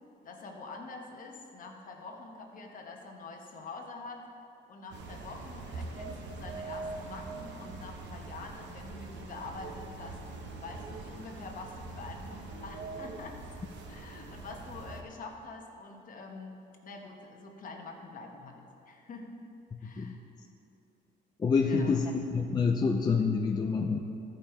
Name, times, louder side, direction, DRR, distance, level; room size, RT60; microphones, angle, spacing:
voice 1, 0.2-4.2 4.7-10.2 10.6-13.4 13.9-16.5 16.8-19.3 19.8-20.2 21.6-22.1, left 3 dB, 45° left, 2 dB, 1.1 m, -45 dB
sound 1, 4.9-15.0, right 3 dB, 75° right, 1.0 m, -43 dB
voice 2, 21.4-24.0, left 5 dB, 20° left, 2 dB, 0.4 m, -27 dB
13.0 x 5.4 x 4.4 m, 2.6 s
cardioid pair, 135°, 19 cm